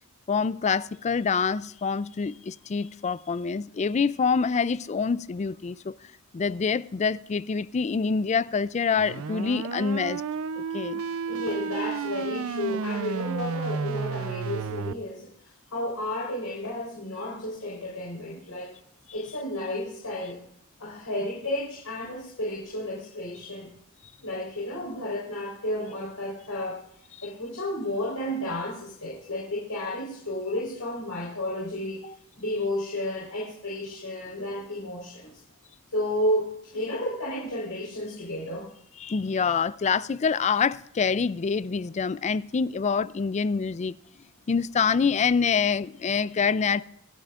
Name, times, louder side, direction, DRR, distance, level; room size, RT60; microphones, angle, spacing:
voice 1, 0.3-5.9 6.3-10.2 10.6-11.0 39.0-44.0 44.5-46.8, left 5 dB, 30° left, 0.4 m, -26 dB
sound 1, 9.0-14.9, right 5 dB, 65° right, 0.5 m, -32 dB
voice 2, 11.3-15.3 15.7-18.8 19.1-20.4 20.8-23.7 24.2-26.8 27.2-32.1 32.4-35.4 35.9-38.7, left 1 dB, 80° left, 4.0 m, -32 dB
26.5 x 9.1 x 2.5 m
head